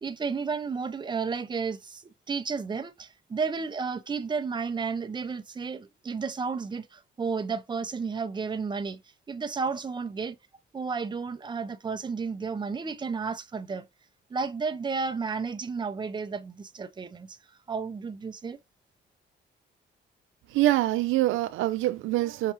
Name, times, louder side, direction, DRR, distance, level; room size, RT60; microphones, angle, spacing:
voice 1, 0.0-9.0 9.3-10.4 10.7-13.8 14.3-17.4 17.7-18.6, right 5 dB, 20° right, 0.6 m, -32 dB
voice 2, 20.5-22.5, right 15 dB, 85° right, 0.4 m, -25 dB
5.6 x 2.3 x 2.9 m
cardioid pair, 90°, 20 cm